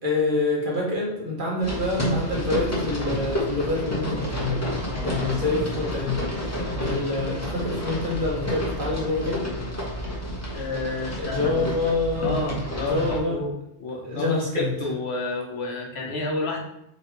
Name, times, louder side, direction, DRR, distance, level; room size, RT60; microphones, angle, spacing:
voice 1, 0.0-4.6 5.0-9.4 11.0-12.4 12.8-13.4 14.0-14.7, left 2 dB, 50° right, -3 dB, 1.2 m, -26 dB
sound 1, 1.6-13.2, equal, 15° left, 0.9 m, -30 dB
voice 2, 4.8-5.2 10.5-11.8 12.2-13.5 13.8-16.6, left 2 dB, 70° left, 0 dB, 1.2 m, -30 dB
4.1 x 2.9 x 4.4 m, 0.81 s
omnidirectional pair, 1.1 m